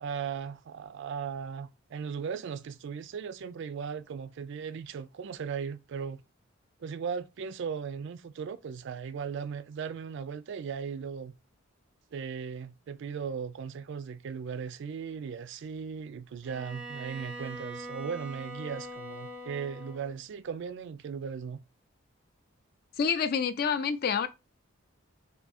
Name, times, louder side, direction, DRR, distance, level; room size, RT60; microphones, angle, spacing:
voice 1, 0.0-6.2 6.8-11.3 12.1-21.6, right 6 dB, 60° right, 0.3 m, -37 dB
Bowed string instrument, 16.4-20.2, right 1 dB, 5° right, 0.6 m, -42 dB
voice 2, 23.0-24.3, left 6 dB, 45° left, 0.3 m, -27 dB
3.5 x 2.7 x 4.1 m
head